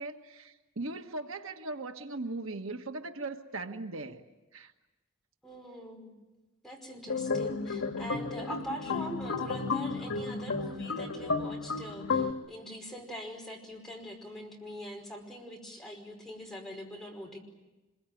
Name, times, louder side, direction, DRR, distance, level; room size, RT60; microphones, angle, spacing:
voice 1, 0.0-4.2 4.5-4.7, right 2 dB, 85° right, 6 dB, 1.5 m, -39 dB
voice 2, 5.4-6.1 6.6-17.4, equal, ahead, -1 dB, 5.2 m, -43 dB
sound 1, 7.1-12.3, left 4 dB, 85° left, 2.0 m, -32 dB
26.0 x 22.5 x 9.2 m, 1.1 s
head